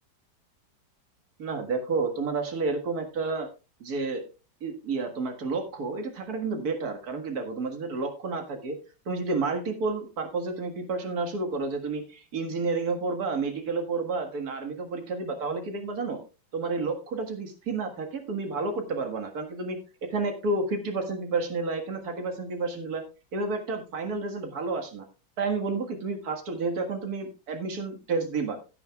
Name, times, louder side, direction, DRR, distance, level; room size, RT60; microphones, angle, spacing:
voice 1, 1.4-3.5 3.8-4.2 4.6-8.8 9.1-16.2 16.5-19.8 20.1-23.0 23.3-25.0 25.4-28.6, right 3 dB, 50° right, 5 dB, 2.1 m, -30 dB
16.5 x 8.8 x 2.3 m, 0.31 s
omnidirectional pair, 2.1 m